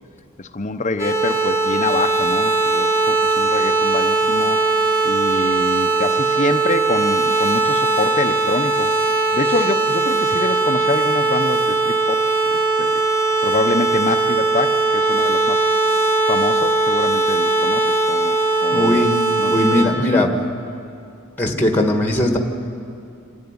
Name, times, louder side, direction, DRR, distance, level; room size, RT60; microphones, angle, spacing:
voice 1, 0.4-4.6 5.0-8.9 9.3-12.2 12.8-13.0 13.4-15.7 16.3-18.4 18.6-19.1 19.4-20.3, left 3 dB, 35° left, 9 dB, 0.7 m, -26 dB
sound 1, 1.0-19.8, right 3 dB, 15° right, 3.3 m, -19 dB
voice 2, 18.7-19.1 19.5-20.5 21.4-22.4, left 1 dB, 10° left, 3 dB, 1.5 m, -18 dB
26.5 x 11.0 x 9.6 m, 2.5 s
head